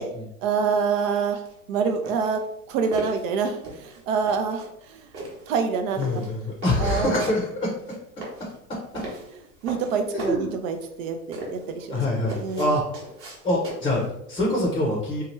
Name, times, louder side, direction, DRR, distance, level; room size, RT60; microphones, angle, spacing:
voice 1, 0.4-1.4 1.7-2.4 2.7-5.1 5.5-6.2 6.8-7.3 9.6-12.7, right 6 dB, 65° right, 6 dB, 0.6 m, -26 dB
sound 1, 1.5-14.1, right 2 dB, 30° right, 1.0 m, -39 dB
voice 2, 6.0-7.7 10.1-10.5 11.8-12.8 13.4-15.2, left 1 dB, 10° left, -2 dB, 0.6 m, -25 dB
2.8 x 2.3 x 3.1 m, 0.77 s
hypercardioid pair, 110°, 43 cm